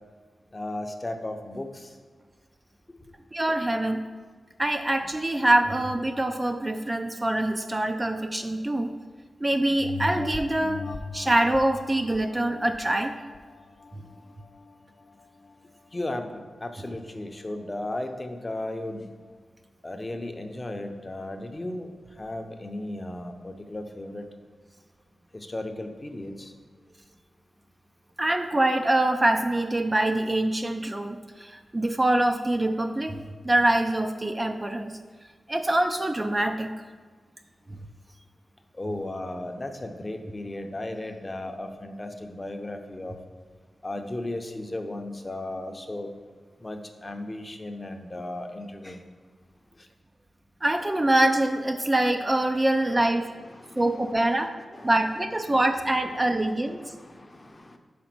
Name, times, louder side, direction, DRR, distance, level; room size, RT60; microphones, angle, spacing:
voice 1, 0.5-1.9 15.9-19.1 19.8-21.9 22.2-24.3 25.3-26.5 38.8-43.2 43.8-46.1 46.6-49.0 52.9-53.0 53.5-54.3 54.7-54.9 55.5-55.6 56.8-57.8, left 1 dB, 25° left, 5 dB, 0.6 m, -35 dB
voice 2, 3.3-4.0 4.6-8.9 9.4-10.8 11.1-13.1 16.8-16.9 28.2-35.0 35.5-36.7 50.6-53.3 53.8-54.5 54.8-56.9, right 1 dB, 20° right, 6 dB, 0.4 m, -24 dB
sound 1, 9.8-14.7 15.2-15.3, left 4 dB, 65° left, 0.4 m, -38 dB
5.1 x 5.1 x 5.9 m, 1.5 s
wide cardioid pair, 90°, 0 cm